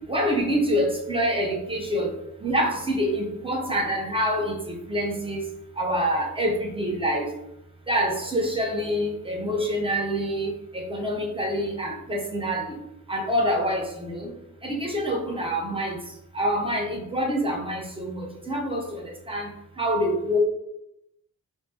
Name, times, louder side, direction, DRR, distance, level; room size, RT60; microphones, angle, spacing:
voice 1, 0.1-2.2 2.4-5.5 5.8-7.3 7.9-12.7 13.1-14.3 14.6-16.0 16.3-19.0 19.3-19.5 19.8-20.4, equal, 15° right, 0 dB, 0.8 m, -26 dB
2.6 x 2.2 x 3.3 m, 0.82 s
cardioid pair, 45°, 36 cm